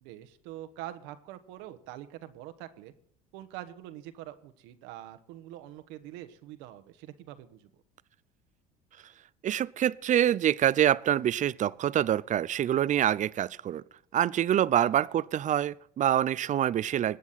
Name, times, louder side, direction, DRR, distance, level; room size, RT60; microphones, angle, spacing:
voice 1, 0.0-2.9 3.3-7.7 14.8-15.2, right 13 dB, 75° right, 1.2 m, -45 dB
voice 2, 9.4-13.8 14.1-17.2, right 11 dB, 40° right, 0.5 m, -26 dB
21.0 x 8.4 x 4.2 m
hypercardioid pair, 75°, 19 cm